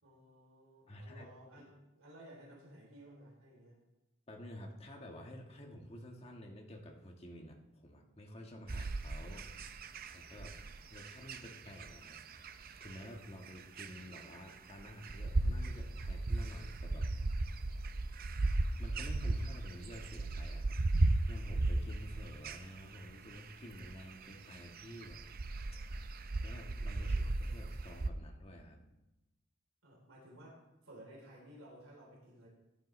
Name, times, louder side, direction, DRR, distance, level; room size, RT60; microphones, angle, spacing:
voice 1, 0.0-3.8 27.0-27.3 29.8-32.5, right 1 dB, 85° right, -2 dB, 3.5 m, -56 dB
voice 2, 0.9-1.7 4.3-9.5 9.7-9.9 10.1-10.6 10.9-17.1 18.4-18.5 18.8-25.2 26.4-28.9, equal, 30° left, 1 dB, 1.5 m, -51 dB
sound 1, 8.7-28.1, right 2 dB, 45° right, 0.6 m, -36 dB
15.0 x 11.0 x 3.2 m, 0.99 s
head